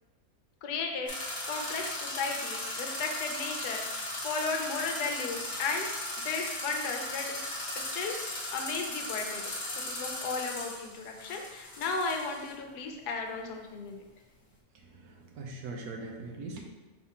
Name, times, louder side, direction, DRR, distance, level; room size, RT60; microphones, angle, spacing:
voice 1, 0.6-7.4 7.7-8.1 8.5-14.0, left 4 dB, 80° left, 2 dB, 1.2 m, -35 dB
sound 1, 1.1-12.5, left 1 dB, 45° left, 1.0 m, -37 dB
voice 2, 14.7-16.6, right 3 dB, 75° right, 1 dB, 1.2 m, -41 dB
4.7 x 3.4 x 2.8 m, 1.2 s
omnidirectional pair, 1.7 m